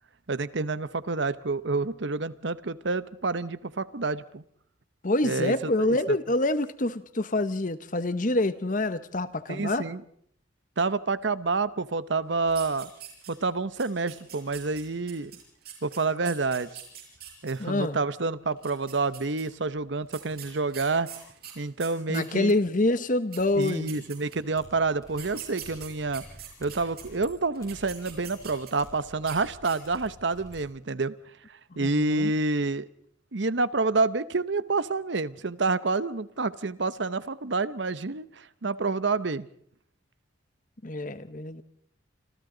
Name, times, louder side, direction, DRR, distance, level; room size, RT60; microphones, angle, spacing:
voice 1, 0.3-4.4 5.2-5.5 5.8-6.0 9.5-10.0 10.8-12.9 13.3-15.3 15.8-16.7 17.4-21.1 21.6-22.6 23.6-26.2 26.6-31.1 31.8-32.9 33.3-39.5, right 3 dB, 65° right, 16 dB, 0.9 m, -28 dB
voice 2, 5.0-9.9 17.6-18.0 22.1-23.9 31.7-32.3 40.8-41.6, left 2 dB, 45° left, 13 dB, 1.1 m, -26 dB
sound 1, 12.5-13.5 13.8-17.5 18.5-19.4 20.1-22.6 23.1-23.2 23.3-24.5 25.1-27.0 27.5-28.9 29.2-29.4 29.6-30.1, right 10 dB, 50° right, 6.6 m, -43 dB
sound 2, 24.5-30.7, equal, 20° left, 7.7 m, -50 dB
27.0 x 26.5 x 3.9 m, 0.65 s
head